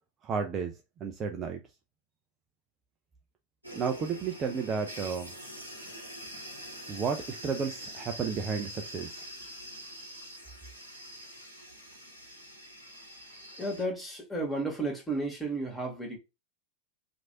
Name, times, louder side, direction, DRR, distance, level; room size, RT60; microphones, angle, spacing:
voice 1, 0.2-1.6 3.7-5.3 6.9-9.2, right 6 dB, 25° right, 0.4 m, -32 dB
sound 1, 3.6-13.8, equal, 90° left, 0.9 m, -45 dB
voice 2, 13.3-16.2, right 2 dB, 5° left, 1.2 m, -33 dB
3.0 x 2.5 x 2.7 m
figure-of-eight pair, 90°, 0 cm